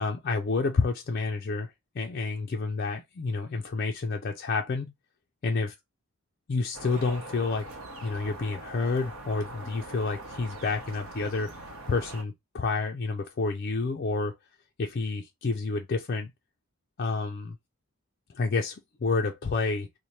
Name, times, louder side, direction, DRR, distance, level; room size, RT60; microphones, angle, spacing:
voice 1, 0.0-4.9 5.4-5.7 6.5-7.7 8.0-14.4 14.8-16.3 17.0-17.6 18.3-19.9, left 4 dB, 45° left, 0.4 m, -29 dB
sound 1, 6.7-12.2, right 2 dB, 65° right, 0.9 m, -42 dB
3.1 x 2.1 x 4.1 m
head